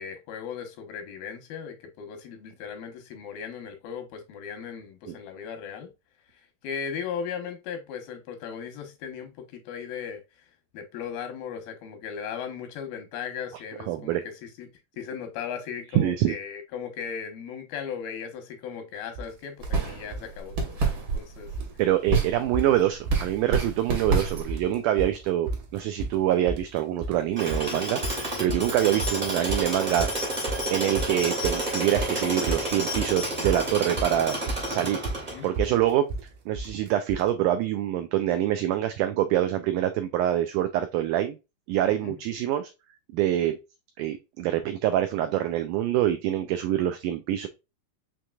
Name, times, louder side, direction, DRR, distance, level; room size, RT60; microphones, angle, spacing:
voice 1, 0.0-5.9 6.6-10.2 10.7-14.7 15.0-21.5 35.3-35.5 41.9-42.1, left 7 dB, 85° left, 2.9 m, -37 dB
voice 2, 13.8-14.2 15.9-16.3 21.8-30.1 30.7-34.4 34.7-35.0 35.4-36.1 36.5-41.4 41.7-42.7 43.1-43.6 44.0-47.5, right 12 dB, 90° right, 1.8 m, -25 dB
sound 1, 19.2-19.3 19.6-20.3 20.6-21.3 21.5-21.8 22.1-22.2 22.5-23.3 23.5-24.2 24.5-37.3, right 2 dB, 70° right, 2.4 m, -34 dB
sound 2, 19.6-24.6, right 4 dB, 50° right, 1.5 m, -29 dB
Tools, 27.4-35.7, right 1 dB, 30° right, 0.7 m, -30 dB
6.4 x 2.9 x 2.3 m
omnidirectional pair, 4.1 m